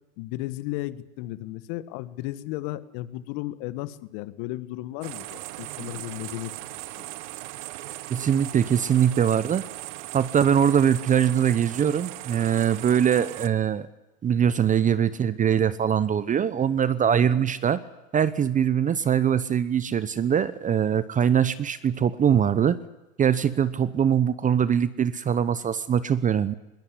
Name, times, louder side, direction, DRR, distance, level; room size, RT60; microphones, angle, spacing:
voice 1, 0.2-6.8 17.3-17.5, left 16 dB, 50° left, 14 dB, 1.4 m, -34 dB
sound 1, 5.0-13.5, right 17 dB, 60° right, 1.2 m, -38 dB
voice 2, 8.1-9.6 10.1-13.9 14.2-17.8 18.1-22.8 23.2-26.5, right 8 dB, 20° right, 16 dB, 0.7 m, -22 dB
21.5 x 20.0 x 9.7 m, 1.0 s
hypercardioid pair, 100°, 40 cm